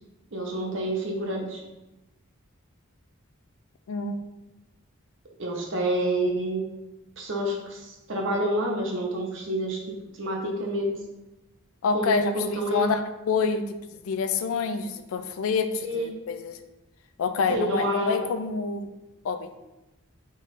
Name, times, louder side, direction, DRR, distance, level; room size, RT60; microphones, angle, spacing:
voice 1, 0.3-1.6 5.4-6.7 7.2-10.9 11.9-12.9 15.8-16.2 17.5-18.2, right 1 dB, 60° right, 0 dB, 0.8 m, -28 dB
voice 2, 3.9-4.2 11.8-13.0 13.3-13.6 14.0-16.6 17.2-18.9 19.2-19.5, left 4 dB, 75° left, 9 dB, 0.3 m, -27 dB
3.8 x 2.4 x 4.0 m, 1.0 s
head